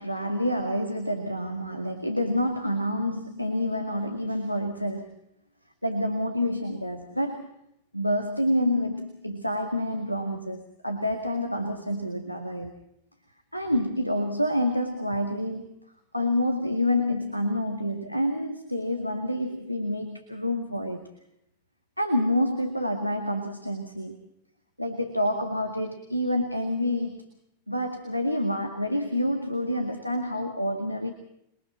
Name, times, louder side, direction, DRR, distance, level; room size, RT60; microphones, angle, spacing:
voice 1, 0.0-5.1 5.8-7.5 7.9-12.7 13.5-15.7 16.1-21.1 22.0-24.2 24.8-27.2 27.7-31.1, left 1 dB, 90° left, 6 dB, 1.9 m, -28 dB
28.0 x 22.5 x 4.4 m, 0.76 s
figure-of-eight pair, 90°, 0 cm